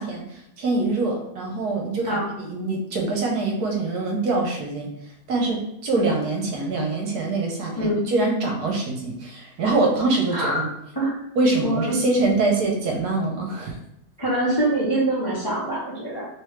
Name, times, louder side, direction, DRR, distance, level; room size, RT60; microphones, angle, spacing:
voice 1, 0.0-4.9 5.3-10.7 11.4-13.7, right 3 dB, 75° right, 1 dB, 1.3 m, -24 dB
voice 2, 10.3-10.6 10.9-11.2 11.6-12.0 14.2-16.3, right 1 dB, 20° left, -6 dB, 0.6 m, -24 dB
3.3 x 3.0 x 3.2 m, 0.78 s
omnidirectional pair, 1.7 m